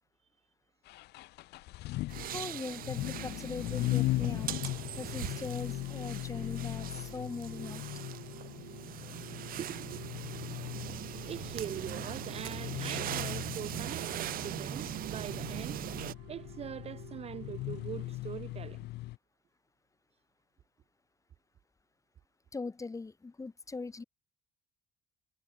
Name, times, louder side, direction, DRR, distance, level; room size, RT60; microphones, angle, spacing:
sound 1, 0.9-19.2, left 18 dB, 80° left, 1.0 m, -39 dB
sound 2, 2.1-16.1, right 13 dB, 60° right, 0.8 m, -41 dB
voice 1, 2.3-4.5 5.0-7.8 22.5-24.0, left 3 dB, 20° left, 1.7 m, -40 dB
sound 3, 4.4-18.2, right 21 dB, 90° right, 1.1 m, -54 dB
voice 2, 9.6-10.0 11.2-15.8 16.3-18.8, right 9 dB, 40° right, 0.4 m, -42 dB
cardioid pair, 110°, 17 cm